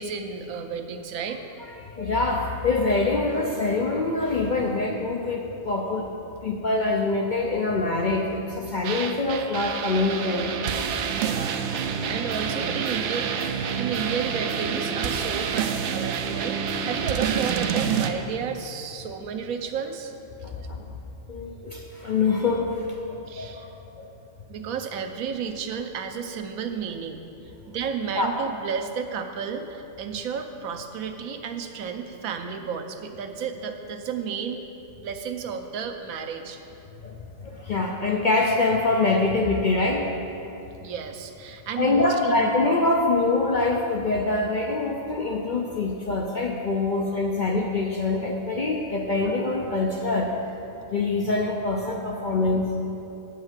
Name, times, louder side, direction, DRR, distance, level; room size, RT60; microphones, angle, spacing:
voice 1, 0.0-1.4 11.1-13.3 13.8-20.1 23.3-23.7 24.5-34.6 35.0-36.6 40.8-42.5, right 6 dB, 90° right, 6 dB, 1.1 m, -32 dB
voice 2, 2.0-6.1 6.4-10.5 20.4-20.8 21.3-22.8 23.4-23.6 24.0-24.1 28.2-28.3 37.0-37.2 37.4-40.1 41.8-50.3 50.9-52.7, left 3 dB, 55° left, 1 dB, 0.5 m, -24 dB
sound 1, 8.8-18.1, right 7 dB, 65° right, 0.8 m, -28 dB
8.7 x 5.6 x 7.4 m, 2.8 s
omnidirectional pair, 1.4 m